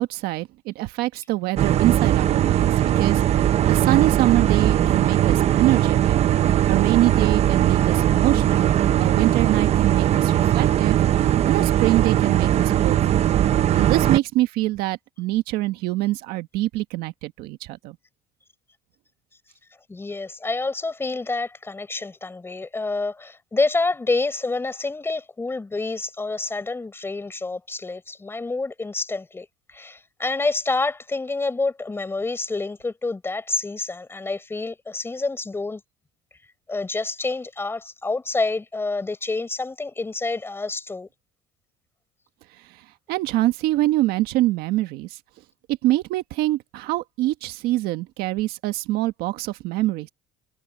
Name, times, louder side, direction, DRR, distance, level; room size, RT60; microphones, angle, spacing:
voice 1, 0.0-6.2 6.7-11.0 11.5-13.3 13.7-18.0 43.1-45.2 45.8-50.1, right 17 dB, 75° right, 1.5 m, -24 dB
sound 1, 1.6-14.2, right 11 dB, 40° right, 0.8 m, -19 dB
voice 2, 19.9-35.8 36.7-41.1, left 3 dB, 15° left, 4.6 m, -28 dB
cardioid pair, 125°, 16 cm